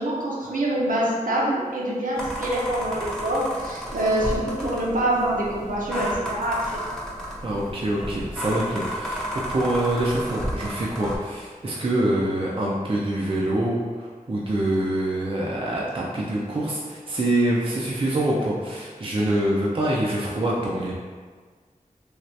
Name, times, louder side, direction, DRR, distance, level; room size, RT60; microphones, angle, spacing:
voice 1, 0.0-6.8, right 1 dB, 70° right, -5 dB, 0.7 m, -25 dB
sound 1, 2.2-11.2, equal, 5° left, 0.6 m, -32 dB
voice 2, 7.4-20.9, right 1 dB, 40° right, -5 dB, 0.4 m, -25 dB
3.2 x 2.4 x 2.7 m, 1.5 s
wide cardioid pair, 45°, 14 cm